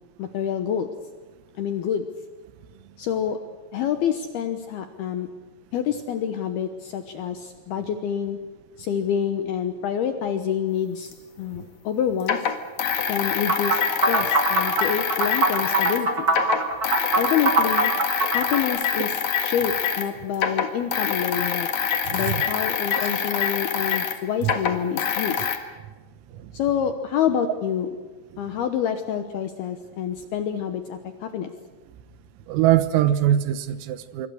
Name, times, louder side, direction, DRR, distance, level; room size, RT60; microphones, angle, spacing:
voice 1, 0.2-0.9 1.6-2.1 3.0-3.4 3.7-5.3 5.7-8.4 8.8-11.1 11.4-12.4 13.1-16.3 17.2-17.9 18.3-19.2 19.4-21.7 22.1-25.5 26.5-27.9 28.4-31.5, left 8 dB, 75° left, 7 dB, 2.4 m, -27 dB
sound 1, 11.1-11.2 12.2-16.0 16.3-20.1 20.3-25.6, left 8 dB, 55° left, 2.1 m, -25 dB
sound 2, 13.5-18.6, right 3 dB, 60° right, 0.9 m, -23 dB
voice 2, 22.1-22.4 23.0-23.1 24.4-24.5 26.3-26.5 32.5-34.3, right 12 dB, 85° right, 13 dB, 3.9 m, -22 dB
26.5 x 24.5 x 6.4 m, 1.3 s
omnidirectional pair, 5.9 m